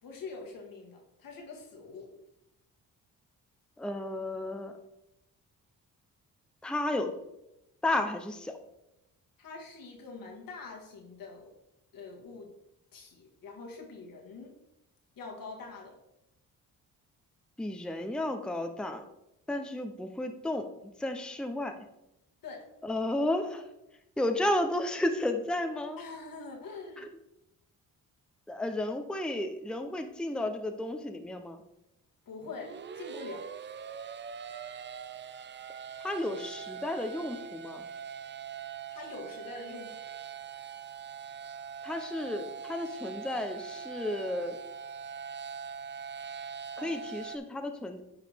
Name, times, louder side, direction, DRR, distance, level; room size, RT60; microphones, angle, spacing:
voice 1, 0.0-2.1 9.4-11.5 11.9-12.5 12.9-14.6 15.2-16.0 22.4-22.6 26.0-27.1 32.3-33.5 38.9-40.2 46.8-47.0, left 4 dB, 70° left, 1 dB, 1.9 m, -44 dB
voice 2, 3.8-4.7 6.6-7.1 7.8-8.5 17.6-19.1 19.5-20.7 21.0-21.9 22.8-23.7 24.2-26.0 27.0-27.1 28.5-31.6 36.0-37.8 41.8-44.6 46.8-48.0, left 1 dB, 5° left, 6 dB, 0.7 m, -32 dB
sound 1, 32.4-47.4, right 7 dB, 35° right, 0.4 m, -42 dB
9.1 x 4.8 x 3.5 m, 0.87 s
cardioid pair, 70°, 35 cm